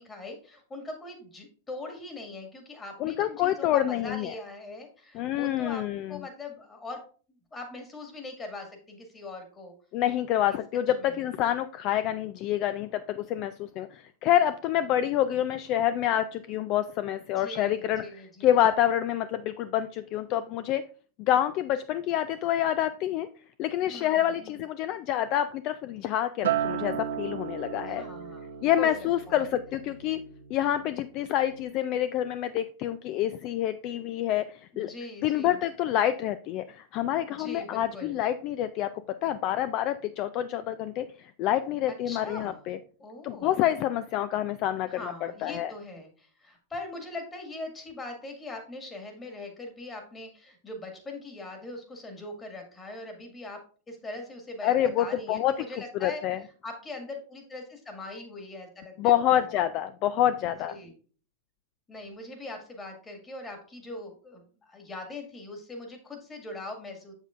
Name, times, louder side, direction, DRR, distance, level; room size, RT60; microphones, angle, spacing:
voice 1, 0.0-7.0 7.5-9.7 10.5-10.6 11.0-11.2 17.4-18.6 23.9-24.6 27.9-28.9 29.3-29.5 34.7-35.6 37.3-38.2 42.1-42.7 43.0-43.6 44.9-53.6 53.9-56.2 56.6-59.5 60.6-60.9 61.9-67.1, left 2 dB, 20° left, 3 dB, 1.9 m, -41 dB
voice 2, 3.0-4.3 5.1-6.2 9.9-20.9 21.2-23.3 23.6-28.0 28.6-30.2 30.5-34.9 35.2-42.8 43.2-45.7 54.6-55.5 56.0-56.4 59.0-60.8, left 11 dB, 45° left, 13 dB, 0.3 m, -27 dB
Acoustic guitar, 26.4-30.9 31.3-31.6, right 9 dB, 80° right, 1.0 m, -34 dB
7.2 x 6.7 x 2.5 m, 0.41 s
hypercardioid pair, 120°, 0 cm